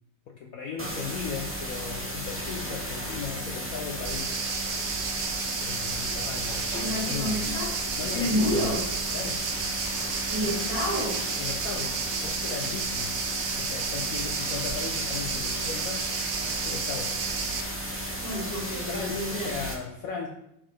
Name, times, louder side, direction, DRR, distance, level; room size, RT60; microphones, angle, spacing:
voice 1, 0.3-4.4 5.6-7.4 8.0-8.7 9.1-9.4 10.4-10.6 11.4-13.2 13.6-16.1 16.6-17.2 18.9-20.3, left 6 dB, 75° left, 2 dB, 0.8 m, -37 dB
sound 1, 0.8-19.7, right 1 dB, 15° right, 0.5 m, -34 dB
sound 2, 4.0-17.6, right 6 dB, 85° right, 0.6 m, -32 dB
sound 3, 4.7-8.6 9.1-9.5 9.8-12.2 12.6-14.6 14.9-15.8 16.1-16.3 16.7-16.8 17.1-19.7, right 1 dB, 35° right, 1.8 m, -46 dB
voice 2, 6.7-7.7 8.1-8.8 10.3-11.3 18.2-19.5, left 1 dB, 50° left, -4 dB, 2.4 m, -29 dB
6.9 x 5.5 x 3.3 m, 0.81 s
omnidirectional pair, 2.2 m